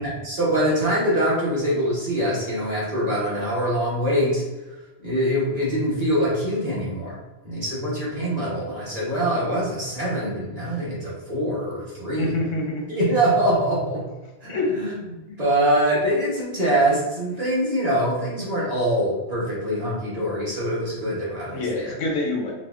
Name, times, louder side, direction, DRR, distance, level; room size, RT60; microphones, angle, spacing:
voice 1, 0.0-4.4 5.0-7.2 7.4-12.4 12.9-14.1 14.4-14.9 15.3-21.9, right 1 dB, 35° right, -7 dB, 1.0 m, -24 dB
voice 2, 12.2-12.8 14.5-14.7 21.5-22.5, left 2 dB, 85° left, -1 dB, 1.2 m, -26 dB
4.0 x 2.3 x 2.4 m, 1.1 s
omnidirectional pair, 1.3 m